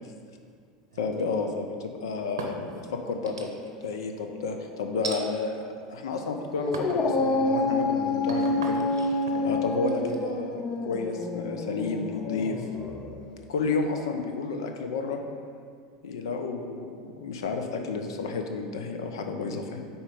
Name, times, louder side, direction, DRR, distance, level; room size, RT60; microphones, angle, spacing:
sound 1, 0.9-1.6 2.1-2.8 3.3-3.9 5.0-5.2 5.9-6.3 6.7-7.1 7.6-11.2, right 3 dB, 90° right, 0.6 m, -40 dB
voice 1, 1.0-3.5 3.8-5.6 5.9-8.8 9.4-12.6 13.5-15.2 16.0-19.8, left 4 dB, 80° left, 4 dB, 0.6 m, -31 dB
Dog, 6.6-13.2, left 2 dB, 35° left, 0.6 m, -28 dB
4.3 x 4.3 x 5.2 m, 2.2 s
hypercardioid pair, 90°, 2 cm